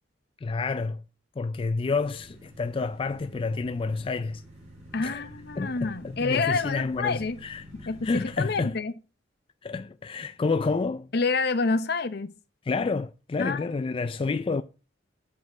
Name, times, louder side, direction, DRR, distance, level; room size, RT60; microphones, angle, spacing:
voice 1, 0.4-1.0 1.4-4.4 5.0-5.2 5.6-8.7 9.6-11.1 12.7-14.6, left 4 dB, 30° left, 0.3 m, -29 dB
sound 1, 1.9-8.7, equal, 35° right, 4.5 m, -48 dB
voice 2, 4.9-7.4 7.7-8.9 11.1-12.3 13.4-13.7, left 4 dB, 60° left, 0.8 m, -28 dB
7.9 x 5.5 x 4.9 m
head